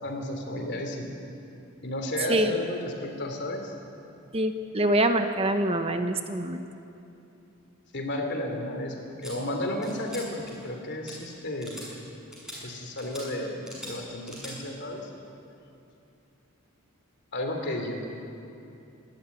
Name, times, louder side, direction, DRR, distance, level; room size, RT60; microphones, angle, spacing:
voice 1, 0.0-1.2 1.8-3.7 7.9-11.8 12.6-15.1 17.3-18.1, left 1 dB, 55° left, 3 dB, 3.3 m, -33 dB
voice 2, 4.3-6.6, right 1 dB, 25° right, 7 dB, 0.9 m, -25 dB
sound 1, 9.2-9.3 9.8-10.2 10.5-10.7 11.0-11.1 11.6-11.9 12.3-12.6 13.0-13.2 13.6-13.9 14.3-14.5, equal, 5° right, 6.9 m, -42 dB
26.0 x 13.0 x 9.9 m, 2.8 s
head